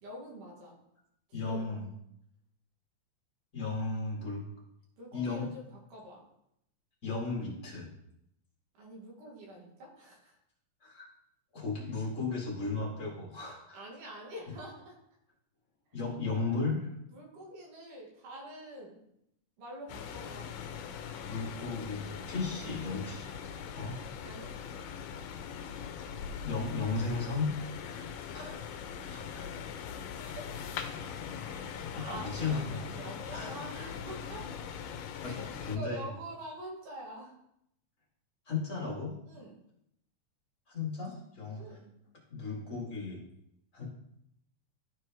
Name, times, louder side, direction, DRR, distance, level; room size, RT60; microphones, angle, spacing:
voice 1, 0.0-0.8 1.3-1.7 5.0-6.2 8.8-10.4 13.7-15.0 16.2-16.7 17.1-19.0 19.6-20.5 24.2-24.6 27.9-28.3 30.2-30.4 31.5-34.5 35.2-37.3 39.2-39.5 41.5-41.9, right 1 dB, 85° right, -2 dB, 3.3 m, -46 dB
voice 2, 1.3-1.9 3.5-4.4 5.1-5.5 7.0-7.9 10.8-11.1 11.5-13.8 15.9-16.9 21.3-23.3 23.7-24.0 26.4-27.5 28.3-28.6 29.0-29.5 31.9-32.8 33.3-33.5 35.2-36.0 38.5-39.2 40.7-41.6 42.3-43.2 43.7-43.8, left 4 dB, 30° left, -4 dB, 2.0 m, -35 dB
sound 1, 19.9-35.8, left 7 dB, 90° left, 2.3 m, -41 dB
13.5 x 4.7 x 3.0 m, 0.77 s
omnidirectional pair, 3.7 m